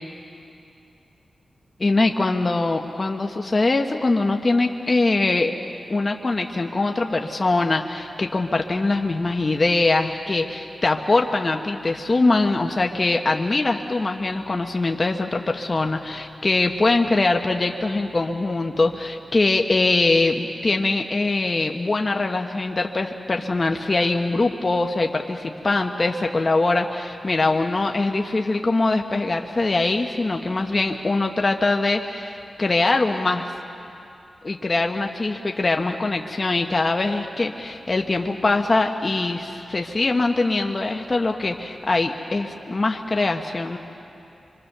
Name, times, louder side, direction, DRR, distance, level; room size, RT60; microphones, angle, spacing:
voice 1, 1.8-5.5 5.9-33.5 34.4-43.8, left 3 dB, 40° left, 3 dB, 1.2 m, -22 dB
25.5 x 25.0 x 6.8 m, 2.7 s
wide cardioid pair, 75°, 0 cm